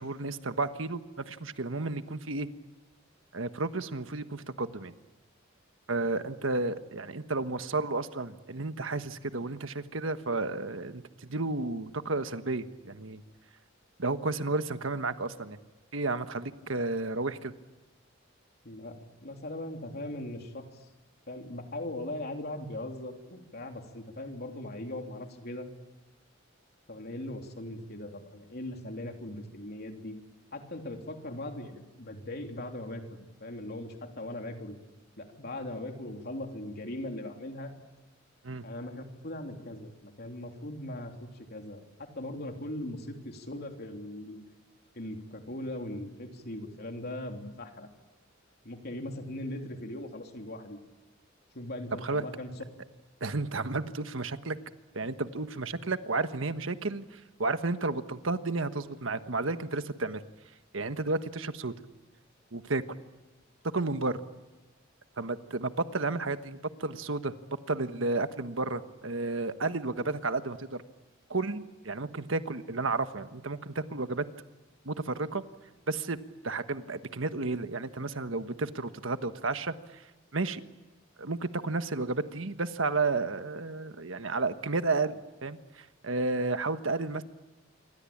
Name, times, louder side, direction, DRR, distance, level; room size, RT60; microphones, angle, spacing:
voice 1, 0.0-2.5 3.3-4.9 5.9-13.2 14.0-15.6 15.9-17.5 38.4-38.7 52.0-52.2 53.2-54.6 54.9-60.2 60.7-61.7 62.5-62.8 63.6-64.2 65.2-67.3 67.7-70.7 71.3-74.2 74.8-75.4 75.9-76.2 76.4-80.0 80.3-80.6 81.2-87.2, right 3 dB, 85° right, 10 dB, 1.4 m, -32 dB
voice 2, 18.6-20.9 21.3-25.7 26.9-30.2 30.5-34.7 35.2-37.7 38.6-44.4 45.0-47.9 48.6-50.8 51.5-52.6, left 1 dB, 55° left, 3 dB, 3.3 m, -39 dB
27.5 x 24.5 x 8.7 m, 1.1 s
head